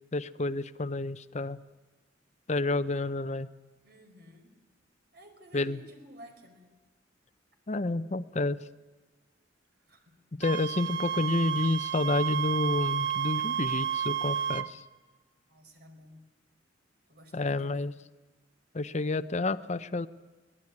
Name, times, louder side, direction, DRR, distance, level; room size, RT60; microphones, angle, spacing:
voice 1, 0.1-1.6 2.5-3.5 5.5-5.8 7.7-8.6 10.3-14.8 17.3-17.9 18.7-20.1, left 2 dB, 35° left, 10 dB, 0.6 m, -29 dB
voice 2, 3.8-4.6 5.1-6.7 9.9-10.1 15.5-16.2 17.1-17.9, equal, 55° right, 5 dB, 4.6 m, -53 dB
Wind instrument woodwind instrument, 10.4-14.7, right 9 dB, 70° right, 1.1 m, -31 dB
23.5 x 17.5 x 9.7 m, 1.3 s
head